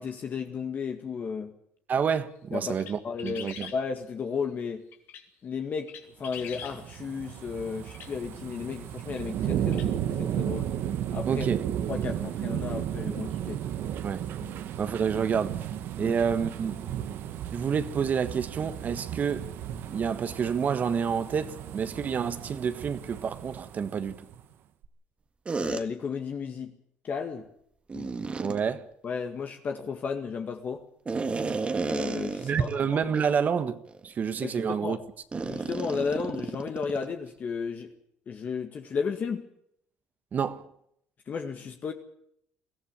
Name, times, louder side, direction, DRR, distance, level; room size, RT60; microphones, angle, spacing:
voice 1, 0.0-1.6 2.5-2.7 3.0-4.8 5.4-10.7 11.1-11.5 11.9-13.6 14.4-14.6 16.0-16.1 25.6-26.7 27.0-27.5 27.9-28.2 28.5-28.6 29.0-30.8 31.8-33.0 34.4-35.0 35.4-37.9 38.3-39.5 41.3-41.9, left 5 dB, 45° left, 1.9 m, -34 dB
voice 2, 1.9-3.7 11.3-11.6 14.0-14.2 14.8-15.6 16.0-16.9 17.5-19.5 19.9-24.1 28.4-28.9 32.4-35.0 40.3-40.7, right 7 dB, 45° right, 1.4 m, -28 dB
sound 1, 2.8-3.8 4.9-5.2 5.9-6.8 7.9-8.1 9.2-9.3 9.7-9.9, left 8 dB, 70° left, 3.1 m, -42 dB
sound 2, 6.3-24.4 24.8-24.9, right 10 dB, 70° right, 1.6 m, -34 dB
sound 3, 25.5-25.8 27.9-28.6 31.1-32.8 33.1-33.3 33.9-34.0 35.3-37.1, right 4 dB, 30° right, 1.8 m, -32 dB
21.5 x 14.5 x 8.7 m
cardioid pair, 100°, 4 cm